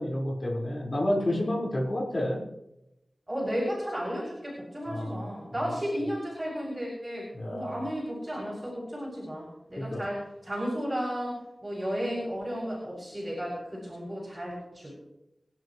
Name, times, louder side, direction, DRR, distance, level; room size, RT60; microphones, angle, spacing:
voice 1, 0.0-2.4 4.9-5.2 7.4-7.8 9.8-10.0, left 1 dB, 45° left, -3 dB, 5.3 m, -30 dB
voice 2, 3.3-15.0, equal, 20° right, -5 dB, 7.7 m, -34 dB
27.5 x 12.0 x 3.3 m, 0.88 s
wide cardioid pair, 75°, 0 cm